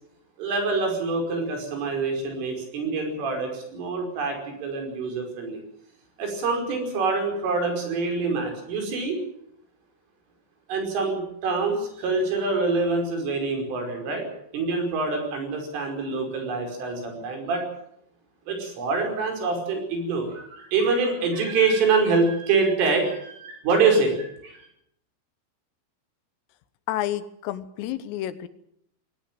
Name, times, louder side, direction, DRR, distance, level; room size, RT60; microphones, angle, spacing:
voice 1, 0.4-5.6 6.2-9.2 10.7-14.2 14.5-17.6 18.5-24.6, right 4 dB, 70° right, 3 dB, 7.8 m, -25 dB
voice 2, 26.9-28.5, left 13 dB, 85° left, 14 dB, 3.8 m, -30 dB
21.0 x 18.0 x 9.1 m, 0.73 s
omnidirectional pair, 5.9 m